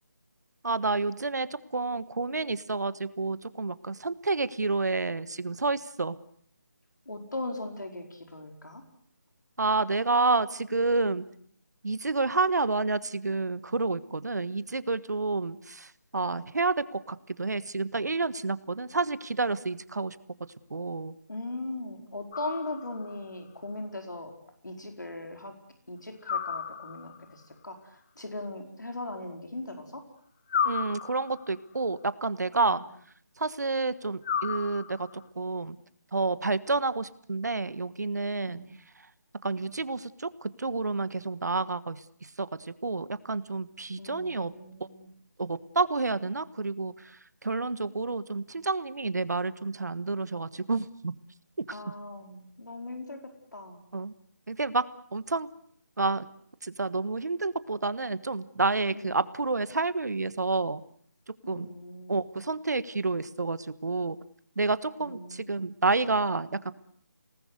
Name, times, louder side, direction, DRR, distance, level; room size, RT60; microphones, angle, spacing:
voice 1, 0.6-6.2 9.6-11.2 11.8-20.2 20.7-21.1 30.6-32.8 33.4-35.1 35.3-35.8 36.1-38.6 39.4-42.0 42.4-44.5 45.4-51.1 51.7-51.8 53.9-54.1 54.5-54.8 55.1-55.5 56.0-56.3 56.6-60.8 61.5-61.7 62.1-64.2 64.6-66.7, right 3 dB, 70° right, 16 dB, 1.4 m, -29 dB
voice 2, 7.1-8.8 21.3-24.3 24.6-25.5 25.9-30.0 32.7-32.8 38.5-38.7 44.0-45.1 51.7-53.2 53.5-53.8 58.9-59.1 61.4-62.2 65.0-65.6, left 2 dB, 80° left, 4 dB, 4.6 m, -39 dB
sound 1, 22.3-23.2 26.2-27.3 30.5-31.6 34.2-35.2, left 7 dB, 30° left, 1.2 m, -33 dB
29.5 x 19.0 x 8.0 m, 0.65 s
figure-of-eight pair, 160°, 10 cm